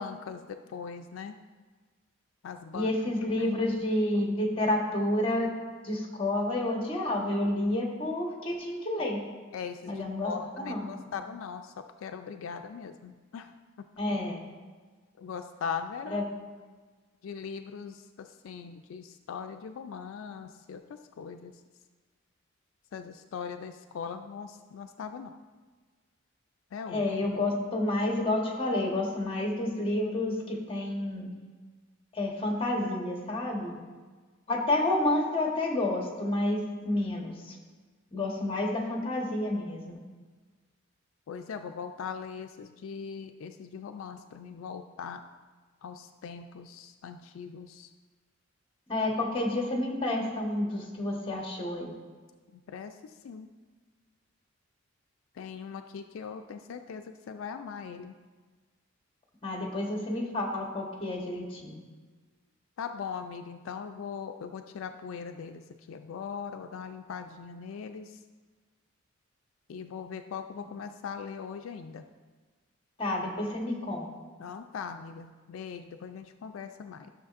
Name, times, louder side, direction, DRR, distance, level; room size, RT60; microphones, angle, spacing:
voice 1, 0.0-1.4 2.4-2.9 3.4-3.5 9.5-11.7 12.0-13.5 15.2-16.3 17.2-21.6 22.9-25.3 26.7-27.1 41.3-45.2 45.8-47.9 52.5-53.5 55.4-58.1 62.8-68.2 69.7-72.0 74.4-77.1, left 6 dB, 80° left, 7 dB, 0.3 m, -40 dB
voice 2, 2.7-5.5 5.8-9.2 9.9-10.3 10.6-11.0 14.0-14.4 16.1-16.2 26.9-31.3 32.1-33.8 34.5-37.6 38.1-40.0 48.9-51.9 59.4-61.8 73.0-74.0, left 1 dB, 25° left, 0 dB, 1.2 m, -29 dB
12.0 x 6.5 x 2.5 m, 1.4 s
head